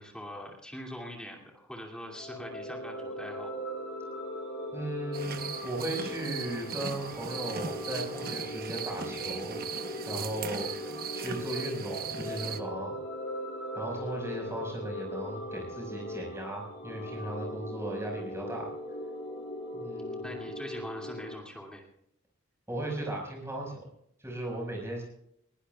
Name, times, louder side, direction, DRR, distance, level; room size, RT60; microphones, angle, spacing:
voice 1, 0.0-3.5 20.2-21.9, equal, 5° left, 0 dB, 2.5 m, -43 dB
sound 1, 2.0-21.4, left 1 dB, 60° left, 3.8 m, -39 dB
voice 2, 4.7-9.5 10.1-10.7 11.1-12.9 13.7-18.7 19.7-20.3 22.7-23.8 24.2-25.0, right 1 dB, 10° right, -1 dB, 5.4 m, -37 dB
sound 2, 5.1-12.6, right 7 dB, 45° right, 0.9 m, -39 dB
21.0 x 18.0 x 2.4 m, 0.72 s
head